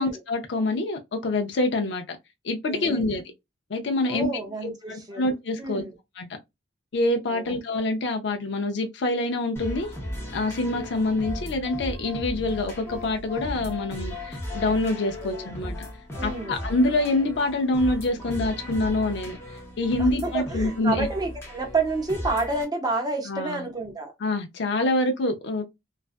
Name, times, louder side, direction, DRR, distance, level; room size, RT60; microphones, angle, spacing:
voice 1, 0.0-2.2 2.4-3.2 3.7-4.3 4.6-5.8 6.2-6.3 6.9-9.9 10.3-15.7 16.2-21.1 23.3-23.7 24.2-25.6, left 2 dB, 65° left, 0.5 m, -26 dB
voice 2, 2.7-3.1 4.0-5.2 5.6-5.9 7.3-7.5 15.2-15.8 16.2-16.6 20.0-24.1, right 3 dB, 20° right, 0.7 m, -29 dB
sound 1, 9.6-22.6, left 1 dB, 15° left, 0.8 m, -36 dB
2.4 x 2.2 x 2.4 m
head